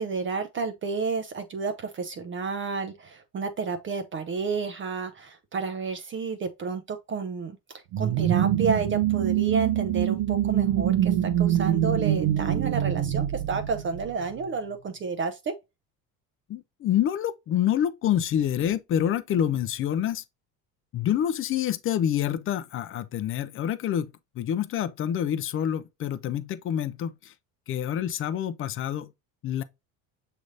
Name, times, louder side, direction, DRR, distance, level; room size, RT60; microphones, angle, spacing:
voice 1, 0.0-15.5, right 4 dB, 30° right, 0.5 m, -31 dB
sound 1, 7.9-14.4, right 12 dB, 70° right, 0.8 m, -24 dB
voice 2, 16.5-20.2 20.9-27.3 27.7-29.1 29.4-29.6, left 10 dB, 35° left, 0.4 m, -27 dB
6.2 x 3.3 x 2.6 m
supercardioid pair, 110°, 41 cm